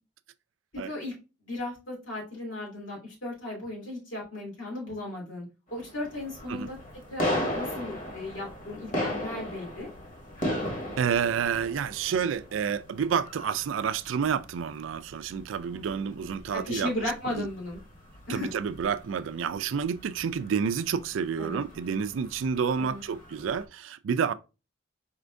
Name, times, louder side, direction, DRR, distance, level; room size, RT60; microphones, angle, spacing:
voice 1, 1.5-5.4 5.7-6.8 7.1-9.9 15.7-16.1 16.5-17.8 18.3-18.5 21.4-21.6 22.8-23.0, left 1 dB, 85° left, 2.5 m, -36 dB
sound 1, 5.7-23.6, left 1 dB, 45° left, 1.1 m, -38 dB
voice 2, 11.0-16.9 17.4-17.5 18.3-24.3, right 7 dB, 85° right, 0.4 m, -29 dB
4.3 x 2.6 x 3.2 m
head